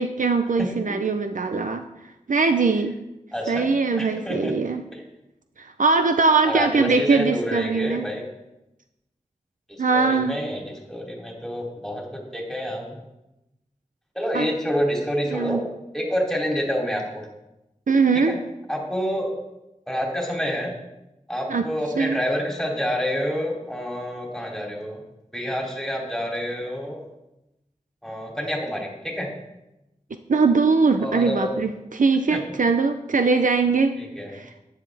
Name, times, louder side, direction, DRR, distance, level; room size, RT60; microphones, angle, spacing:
voice 1, 0.0-1.8 2.3-2.9 3.5-4.8 5.6-8.1 9.8-10.4 14.3-14.5 15.3-15.6 17.9-18.4 21.5-21.6 22.0-22.2 30.3-33.9 34.3-34.5, right 4 dB, 80° right, 7 dB, 0.6 m, -21 dB
voice 2, 0.6-1.0 3.3-4.6 4.9-5.0 6.5-8.3 9.7-13.0 14.1-15.7 15.9-17.2 18.1-18.4 18.7-19.3 19.9-20.7 21.3-25.0 25.3-27.0 28.0-29.3 31.0-31.5 32.3-32.4 34.0-34.3, equal, 5° left, -1 dB, 3.0 m, -28 dB
11.5 x 9.8 x 3.4 m, 0.92 s
wide cardioid pair, 50°, 13 cm